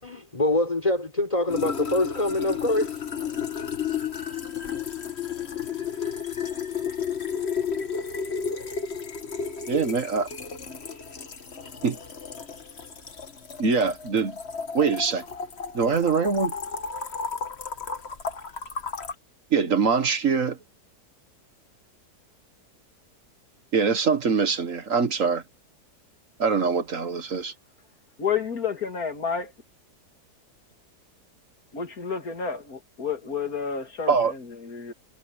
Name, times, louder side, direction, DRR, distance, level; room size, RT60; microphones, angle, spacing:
voice 1, 0.0-3.4, left 1 dB, 20° left, 4.4 m, -25 dB
sound 1, 1.5-19.1, left 6 dB, 40° left, 1.6 m, -33 dB
voice 2, 9.7-10.3 11.8-12.0 13.6-14.4 14.7-15.2 15.7-16.5 19.5-20.6 23.7-25.4 26.4-27.5 34.1-34.3, right 5 dB, 55° right, 1.8 m, -23 dB
voice 3, 28.2-29.5 31.7-34.9, left 6 dB, 65° left, 2.9 m, -30 dB
omnidirectional pair, 1.7 m